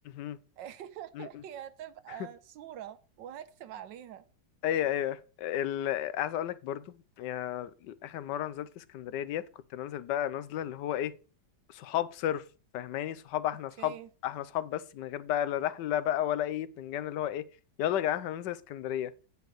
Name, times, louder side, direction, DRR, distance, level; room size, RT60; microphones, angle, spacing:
voice 1, 0.6-4.2 13.8-14.1, right 10 dB, 90° right, 1.5 m, -44 dB
voice 2, 4.6-9.4 9.7-11.1 11.7-12.4 12.7-13.9 14.2-17.4 17.8-19.1, left 11 dB, 80° left, 1.3 m, -32 dB
9.3 x 5.1 x 6.3 m
omnidirectional pair, 1.9 m